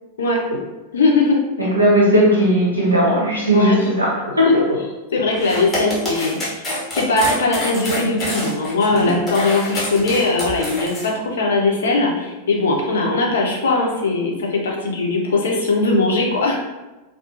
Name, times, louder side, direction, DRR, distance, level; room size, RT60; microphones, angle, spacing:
voice 1, 0.9-1.7 3.5-3.8 5.1-16.6, left 3 dB, 65° left, -1 dB, 0.5 m, -20 dB
voice 2, 1.6-4.7, equal, 85° right, -5 dB, 0.8 m, -16 dB
sound 1, 5.3-11.1, left 1 dB, 15° left, 1.0 m, -26 dB
2.4 x 2.1 x 2.6 m, 1.1 s
figure-of-eight pair, 90°, 0 cm